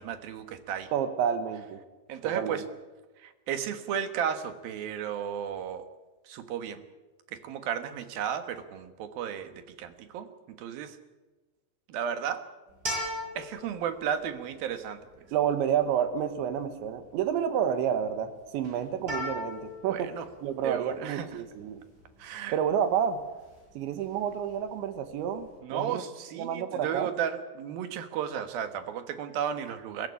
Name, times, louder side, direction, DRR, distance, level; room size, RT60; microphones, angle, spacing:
voice 1, 0.0-0.9 2.1-2.6 3.2-5.8 6.3-6.8 7.3-10.3 10.6-11.0 11.9-12.4 13.4-15.3 19.9-20.3 20.6-21.3 22.2-22.6 25.6-30.1, right 8 dB, 65° right, 10 dB, 2.9 m, -34 dB
voice 2, 0.9-1.8 2.2-2.6 15.3-20.1 20.4-21.8 22.5-23.2 23.8-26.0 26.4-27.1, right 8 dB, 85° right, 10 dB, 3.7 m, -29 dB
sound 1, 12.7-25.5, left 1 dB, 20° right, 8.0 m, -41 dB
23.0 x 14.0 x 9.8 m, 1.2 s
omnidirectional pair, 5.2 m